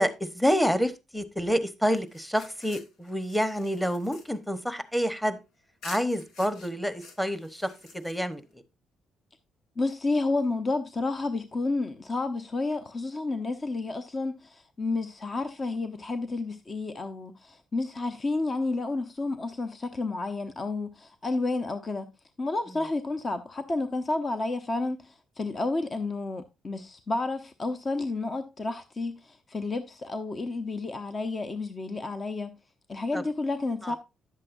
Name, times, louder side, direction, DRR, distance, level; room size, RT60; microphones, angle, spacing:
voice 1, 0.0-5.4 5.8-8.6 33.1-33.2 33.8-34.0, equal, 5° left, 1.1 m, -28 dB
sound 1, 1.9-5.3 5.8-8.5, left 4 dB, 80° left, 1.9 m, -49 dB
voice 2, 9.8-22.1 22.4-32.5 32.9-34.0, left 3 dB, 35° left, 0.8 m, -31 dB
11.0 x 7.6 x 2.6 m
cardioid pair, 90°, 0 cm